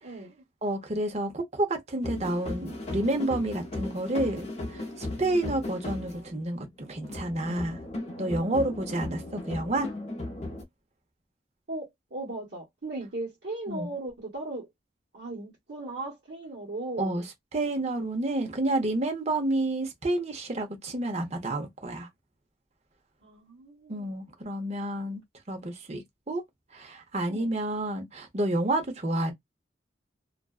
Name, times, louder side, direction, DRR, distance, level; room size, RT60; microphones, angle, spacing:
voice 1, 0.0-0.4 11.7-14.7 15.1-17.2 23.2-24.2 27.3-27.5, right 2 dB, 60° right, 1.1 m, -37 dB
voice 2, 0.6-7.8 8.2-9.9 13.7-13.9 17.0-17.2 17.5-22.1 23.9-25.2 25.5-26.4 26.7-29.3, right 1 dB, 35° right, 0.7 m, -29 dB
sound 1, 2.0-10.6, left 2 dB, 35° left, 0.7 m, -37 dB
2.4 x 2.2 x 2.3 m
head